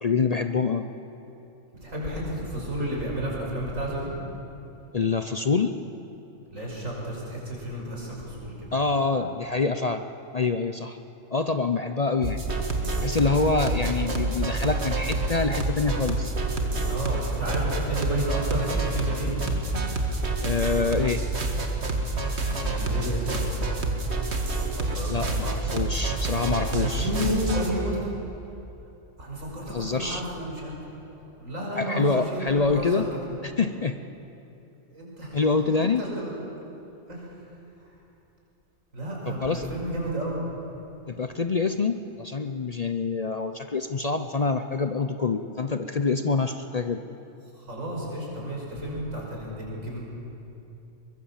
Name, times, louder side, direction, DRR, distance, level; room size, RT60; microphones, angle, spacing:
voice 1, 0.0-0.9 4.9-5.7 8.7-10.0 10.3-11.0 11.3-12.4 13.0-16.3 20.4-21.2 25.1-27.1 29.7-30.2 31.8-33.1 33.4-34.0 35.3-36.0 39.3-39.7 41.1-47.0, left 4 dB, 40° left, 8 dB, 0.6 m, -26 dB
voice 2, 1.8-4.1 6.5-8.7 16.9-19.3 22.6-23.7 24.7-25.5 26.8-28.1 29.2-33.1 34.9-35.4 35.7-36.5 37.1-37.2 38.9-40.5 47.5-50.0, right 1 dB, 85° right, -3 dB, 6.1 m, -32 dB
sound 1, 12.2-27.7, right 2 dB, 55° right, 2.1 m, -28 dB
23.0 x 21.5 x 7.3 m, 2.8 s
omnidirectional pair, 1.3 m